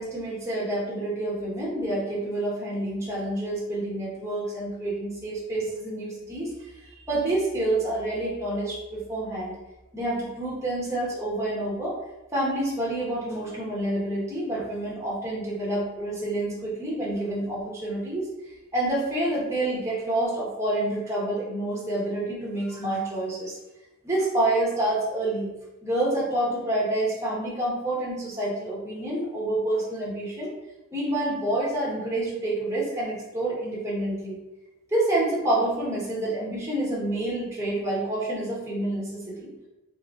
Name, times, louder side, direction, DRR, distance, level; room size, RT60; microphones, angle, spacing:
voice 1, 0.0-6.5 7.1-9.5 9.9-12.0 12.3-18.3 18.7-23.6 24.0-25.5 25.8-30.5 30.9-34.4 34.9-39.5, right 1 dB, 15° right, -6 dB, 0.8 m, -28 dB
2.8 x 2.6 x 3.4 m, 1.0 s
head